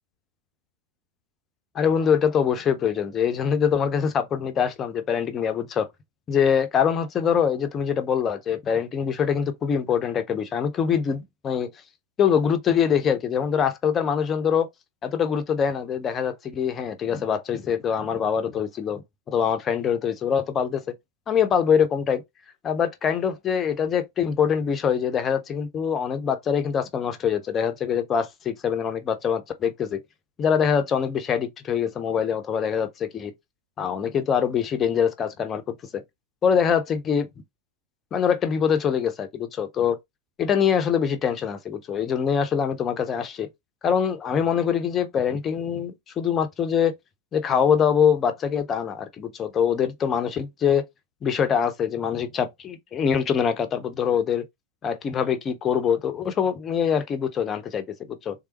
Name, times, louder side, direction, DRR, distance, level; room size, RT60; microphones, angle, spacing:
voice 1, 1.7-5.9 6.3-11.7 12.2-14.7 15.0-20.8 21.3-22.2 22.6-30.0 30.4-33.3 33.8-35.6 35.9-36.0 36.4-37.3 38.1-40.0 40.4-43.5 43.8-46.9 47.3-50.8 51.2-54.4 54.8-58.3, left 7 dB, 25° left, 0.7 m, -24 dB
3.6 x 3.4 x 3.0 m
figure-of-eight pair, 90°, 0 cm